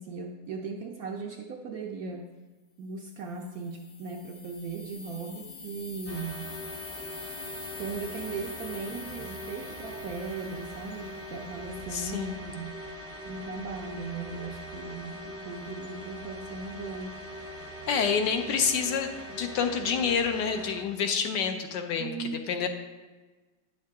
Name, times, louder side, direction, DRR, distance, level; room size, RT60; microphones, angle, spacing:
voice 1, 0.0-2.3 2.8-6.5 7.8-12.8 13.2-17.2 22.0-22.4, right 4 dB, 70° right, 2 dB, 0.9 m, -38 dB
sound 1, 3.3-11.2, left 4 dB, 55° left, 1.1 m, -45 dB
sound 2, 6.1-20.8, equal, 15° left, 0.4 m, -42 dB
voice 2, 11.9-12.3 17.9-22.7, left 6 dB, 75° left, 6 dB, 1.3 m, -28 dB
9.2 x 6.5 x 3.5 m, 1.3 s
omnidirectional pair, 2.0 m